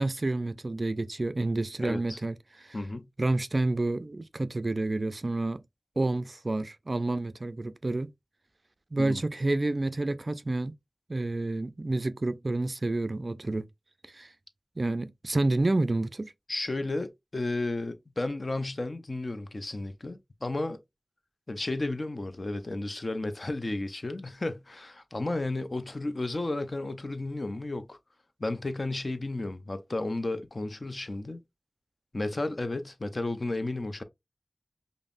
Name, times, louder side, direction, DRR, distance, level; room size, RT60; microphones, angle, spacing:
voice 1, 0.0-2.8 3.2-5.6 6.0-8.1 8.9-10.8 11.1-13.7 14.1-14.3 14.8-16.3, right 2 dB, 50° right, 0.3 m, -29 dB
voice 2, 1.8-2.2 2.7-3.1 9.0-9.2 16.5-20.8 21.5-28.0 28.4-31.4 32.1-34.0, left 2 dB, 50° left, 0.5 m, -33 dB
5.3 x 2.0 x 2.4 m
wide cardioid pair, 65°, 0 cm